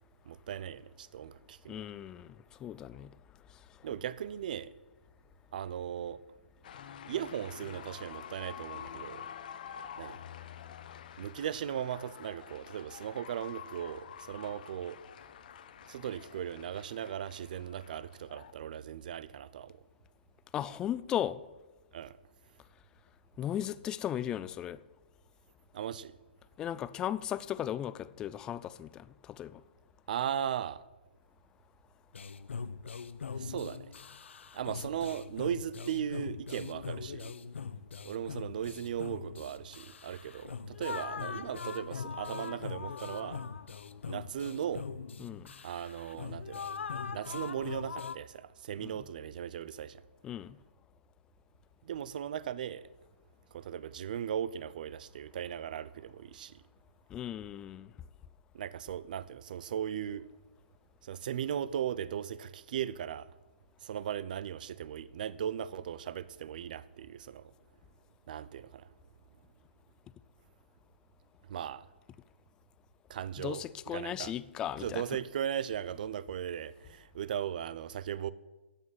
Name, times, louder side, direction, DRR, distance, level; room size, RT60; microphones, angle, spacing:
voice 1, 0.2-1.9 3.8-4.7 5.5-6.2 7.0-9.3 10.0-10.2 11.2-15.0 15.9-19.8 21.9-22.2 25.7-26.2 30.1-30.8 33.3-33.9 34.5-37.4 38.0-43.4 44.1-44.9 45.6-46.7 47.1-50.0 51.8-52.9 53.5-56.6 58.5-60.3 61.0-63.3 63.8-67.5 68.3-68.9 71.5-71.9 73.1-74.3 74.8-78.3, right 9 dB, 45° right, 0.8 m, -37 dB
voice 2, 1.7-3.1 20.5-21.4 23.4-24.8 26.6-29.6 45.2-45.5 48.8-49.0 50.2-50.6 57.1-57.9 73.4-75.0, left 11 dB, 10° left, 0.4 m, -36 dB
sound 1, 6.6-18.5, left 9 dB, 45° left, 1.2 m, -48 dB
sound 2, 32.1-48.2, left 6 dB, 85° left, 1.0 m, -41 dB
14.5 x 9.8 x 9.5 m
hypercardioid pair, 165°, 6 cm